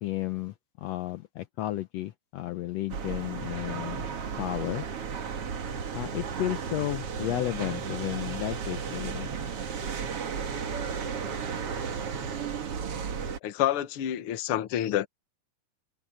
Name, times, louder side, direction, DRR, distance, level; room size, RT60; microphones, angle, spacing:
voice 1, 0.0-4.1 4.4-4.9 5.9-9.3, left 15 dB, 80° left, 1.5 m, -33 dB
sound 1, 2.9-13.4, right 6 dB, 50° right, 2.3 m, -34 dB
voice 2, 13.4-15.1, left 12 dB, 60° left, 1.5 m, -28 dB
omnidirectional pair, 3.9 m